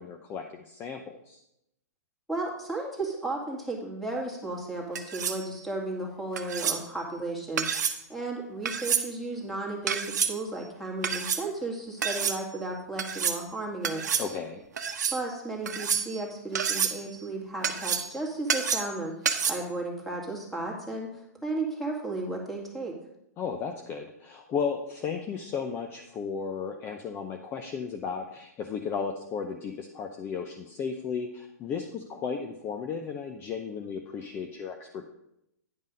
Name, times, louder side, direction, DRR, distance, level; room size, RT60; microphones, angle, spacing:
voice 1, 0.0-1.4 14.2-14.6 23.4-35.1, left 6 dB, 25° left, 4 dB, 0.7 m, -34 dB
voice 2, 2.3-14.1 15.1-19.1 19.5-23.0, right 2 dB, ahead, -1 dB, 2.0 m, -34 dB
sound 1, 5.0-5.4 6.4-6.8 7.6-8.0 8.7-9.1 9.9-10.3 11.0-11.4 12.0-12.4 13.0-13.4 13.8-14.3 14.8-15.2 15.7-16.2 16.6-17.0 17.6-18.1 18.5-19.0 19.3-19.5, right 7 dB, 75° right, 0.9 m, -28 dB
9.8 x 5.3 x 5.2 m, 0.81 s
hypercardioid pair, 125°, 9 cm